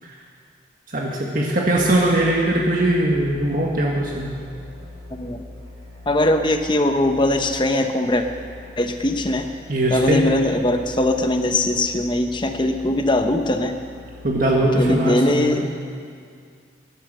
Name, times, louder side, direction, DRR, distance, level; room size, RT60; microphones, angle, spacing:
voice 1, 0.9-4.4 9.7-10.2 14.2-15.6, right 1 dB, 45° right, -3 dB, 1.6 m, -20 dB
sound 1, 1.7-14.9, left 2 dB, 90° right, 5.0 m, -41 dB
voice 2, 5.1-5.4 6.1-8.3 8.8-9.5 9.9-13.8 14.8-15.7, left 1 dB, 25° left, 6 dB, 0.9 m, -20 dB
17.5 x 11.5 x 6.7 m, 2.2 s
head